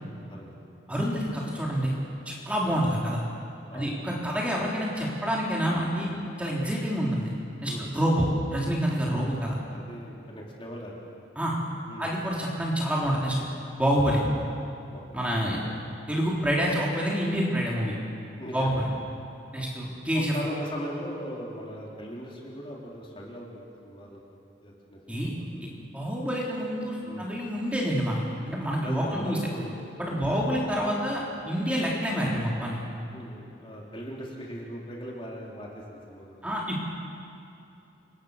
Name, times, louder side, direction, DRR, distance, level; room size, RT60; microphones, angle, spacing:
voice 1, 0.3-0.6 0.9-1.0 2.7-2.9 3.7-3.9 7.6-8.0 9.1-9.3 9.7-11.0 11.9-12.1 14.9-15.2 18.3-18.7 19.5-19.7 20.1-24.2 24.6-25.5 27.0-27.3 28.8-29.7 30.1-30.3 33.1-36.5, equal, 25° left, -3 dB, 3.6 m, -39 dB
voice 2, 0.9-1.9 2.3-3.2 3.7-6.1 6.4-7.3 7.6-9.6 11.4-11.6 12.0-13.4 13.8-14.2 15.1-15.6 16.1-17.9 18.5-18.9 19.5-20.4 25.1-25.3 25.9-29.4 30.0-32.8 36.4-36.8, equal, 5° right, -4 dB, 3.8 m, -27 dB
29.0 x 24.5 x 6.7 m, 2.7 s
head